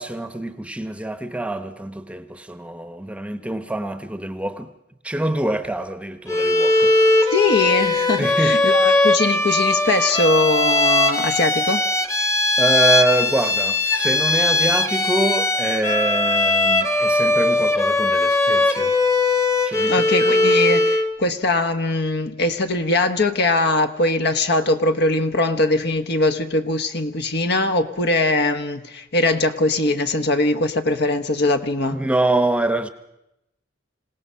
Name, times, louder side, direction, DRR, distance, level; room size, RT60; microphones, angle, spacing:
voice 1, 0.0-4.7 5.0-6.9 8.2-8.6 12.6-18.9 19.7-19.9 20.2-20.4 31.9-32.9, right 1 dB, 5° right, 0.9 m, -25 dB
Bowed string instrument, 6.3-21.1, left 2 dB, 15° left, 1.2 m, -19 dB
voice 2, 7.3-11.8 19.9-32.1, left 2 dB, 60° left, 1.2 m, -21 dB
26.5 x 17.5 x 5.6 m
head